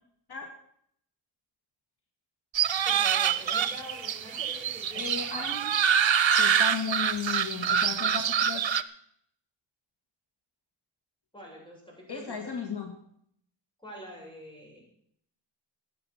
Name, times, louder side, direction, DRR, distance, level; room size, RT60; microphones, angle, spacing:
sound 1, 2.5-8.8, right 8 dB, 90° right, 0.8 m, -26 dB
voice 1, 2.8-5.7 11.3-12.4 13.8-14.8, equal, 10° left, -2 dB, 7.4 m, -45 dB
voice 2, 4.9-5.7 6.4-8.6 12.1-12.9, left 6 dB, 60° left, 3 dB, 2.2 m, -35 dB
15.0 x 9.4 x 7.5 m, 0.68 s
wide cardioid pair, 140°, 44 cm